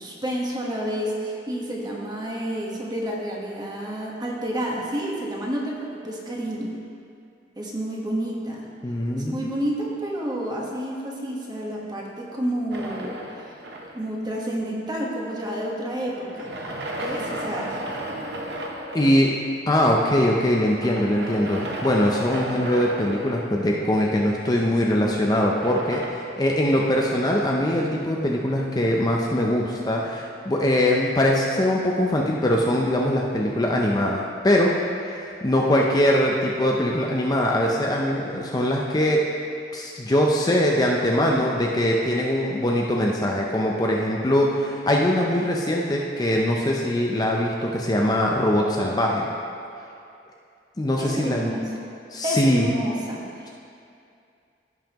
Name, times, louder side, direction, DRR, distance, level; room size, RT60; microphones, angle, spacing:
voice 1, 0.0-6.7 7.6-8.6 9.1-13.2 13.9-16.5 17.0-17.8 51.0-51.6 52.2-53.5, right 1 dB, 25° right, -3 dB, 1.3 m, -29 dB
voice 2, 8.8-9.4 17.0-17.2 18.9-19.4 19.7-34.7 35.0-39.2 39.7-49.2 50.8-51.5 52.1-52.7, left 1 dB, 20° left, -1 dB, 0.6 m, -22 dB
sound 1, 12.7-14.2 16.1-19.3 20.8-24.0 25.4-26.1, right 1 dB, 70° right, 0.9 m, -33 dB
15.5 x 5.6 x 3.0 m, 2.5 s
head